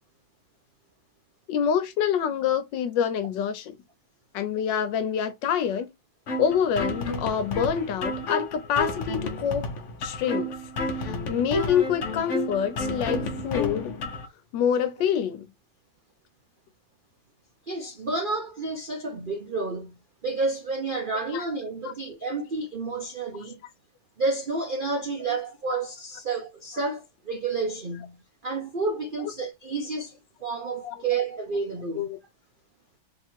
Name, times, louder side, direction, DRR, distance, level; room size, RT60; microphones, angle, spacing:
voice 1, 1.5-3.8 4.3-5.9 6.4-9.7 10.0-10.5 11.0-14.0 14.5-15.5 21.3-21.4 25.3-25.4 30.8-30.9 32.0-32.2, left 8 dB, 80° left, 1.4 m, -26 dB
sound 1, 6.3-14.3, left 2 dB, 50° left, 1.0 m, -31 dB
voice 2, 17.7-20.0 20.2-23.6 24.2-28.2 28.4-30.2 30.4-32.1, right 3 dB, 70° right, 0.4 m, -30 dB
3.6 x 2.9 x 4.4 m
omnidirectional pair, 2.0 m